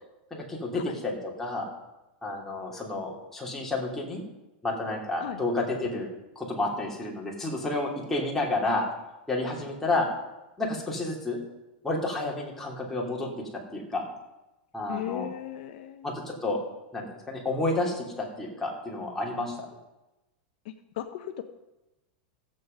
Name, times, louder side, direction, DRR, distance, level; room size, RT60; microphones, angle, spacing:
voice 1, 0.3-1.7 2.2-4.2 4.6-6.1 6.3-8.8 9.3-10.1 10.6-11.4 11.8-13.3 13.7-14.0 14.7-15.3 16.0-16.6 16.9-19.5, left 2 dB, 5° left, -3 dB, 3.0 m, -30 dB
voice 2, 14.9-16.1 20.6-21.4, left 11 dB, 65° left, 8 dB, 0.8 m, -37 dB
15.0 x 7.7 x 5.3 m, 1.0 s
supercardioid pair, 125°, 5 cm